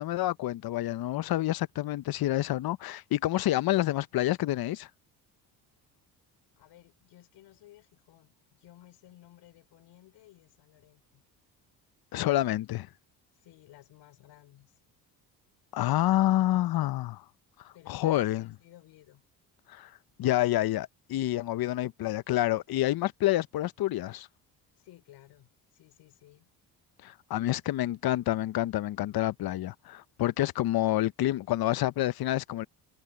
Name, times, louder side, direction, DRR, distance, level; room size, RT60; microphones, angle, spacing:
voice 1, 0.0-4.9 12.1-12.9 15.7-17.2 17.9-18.5 19.7-19.9 20.2-24.3 27.0-32.7, left 15 dB, 60° left, 0.8 m, -28 dB
voice 2, 6.6-11.2 13.3-14.7 17.7-19.2 24.7-26.5, left 14 dB, 75° left, 4.4 m, -56 dB
cardioid pair, 85°, 41 cm